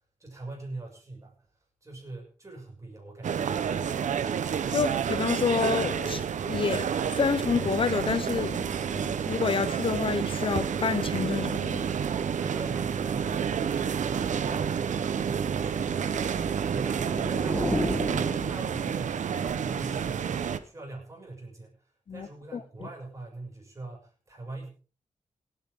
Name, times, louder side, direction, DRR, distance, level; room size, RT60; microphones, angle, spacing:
voice 1, 0.2-1.4 1.8-3.5 12.4-24.7, right 2 dB, 25° right, 6.5 m, -43 dB
sound 1, 3.2-20.6, right 8 dB, 75° right, 1.0 m, -30 dB
voice 2, 4.7-11.9 22.1-22.3 22.5-22.6, left 6 dB, 45° left, 0.7 m, -29 dB
sound 2, 7.6-18.7, right 6 dB, 50° right, 0.7 m, -35 dB
sound 3, 16.5-19.2, left 1 dB, 10° left, 1.4 m, -33 dB
27.0 x 9.2 x 3.7 m
wide cardioid pair, 140°, 13 cm